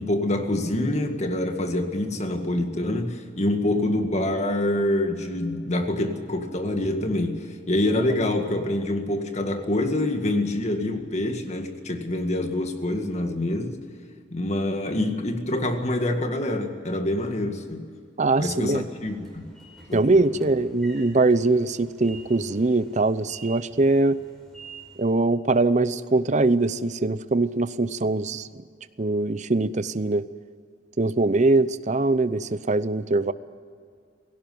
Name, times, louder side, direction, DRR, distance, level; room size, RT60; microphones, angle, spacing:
voice 1, 0.0-13.8 14.3-17.8 18.4-19.5 19.9-20.2, left 1 dB, 40° left, 5 dB, 2.0 m, -26 dB
voice 2, 18.2-18.8 19.9-24.2 25.0-28.6 29.0-30.3 31.0-33.3, right 2 dB, 40° right, 14 dB, 0.7 m, -22 dB
Train / Sliding door, 18.7-25.2, right 4 dB, ahead, 5.1 m, -48 dB
17.5 x 17.0 x 9.4 m, 2.2 s
head